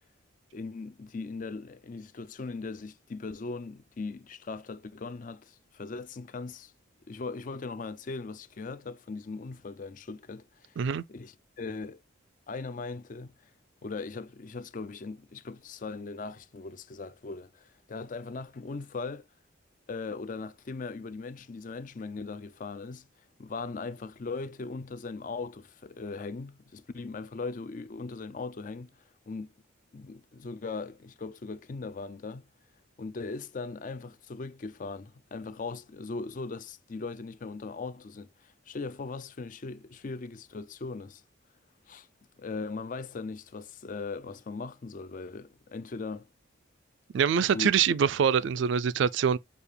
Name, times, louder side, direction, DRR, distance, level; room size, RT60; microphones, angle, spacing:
voice 1, 0.5-6.7 7.1-12.0 12.5-13.3 13.8-19.3 19.9-23.1 23.4-28.9 29.3-29.5 29.9-32.5 33.0-41.2 41.9-42.1 42.4-46.3 47.5-47.7, left 3 dB, 40° left, 0.4 m, -39 dB
voice 2, 47.1-49.4, right 7 dB, 65° right, 0.3 m, -24 dB
6.8 x 2.4 x 3.2 m
head